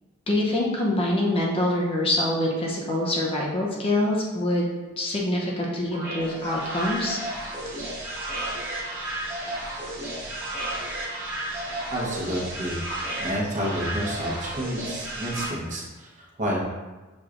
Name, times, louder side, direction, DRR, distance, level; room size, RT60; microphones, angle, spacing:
voice 1, 0.3-4.7 5.0-7.2, left 1 dB, 25° left, -3 dB, 0.6 m, -25 dB
sound 1, 5.9-15.5, right 1 dB, 20° right, 1.4 m, -33 dB
voice 2, 11.9-12.8 13.2-16.6, equal, 35° right, -4 dB, 0.9 m, -30 dB
6.1 x 3.1 x 2.5 m, 1.2 s
head